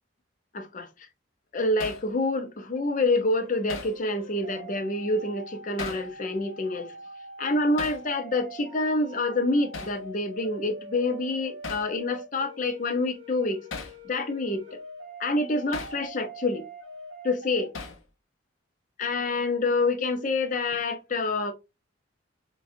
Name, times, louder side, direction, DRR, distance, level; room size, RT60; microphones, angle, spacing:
voice 1, 0.5-1.1 1.5-6.9 7.4-13.7 14.0-14.8 15.2-16.6 17.2-17.7 19.0-21.5, left 2 dB, 40° left, 0.6 m, -27 dB
Hammer, 1.8-2.1 3.7-4.0 5.8-6.1 7.8-8.0 9.7-10.0 11.6-11.9 13.7-14.0 15.7-16.0 17.7-18.1, left 4 dB, 85° left, 0.7 m, -37 dB
sound 1, 3.3-17.7, right 1 dB, 75° right, 1.2 m, -44 dB
5.0 x 2.3 x 2.5 m
head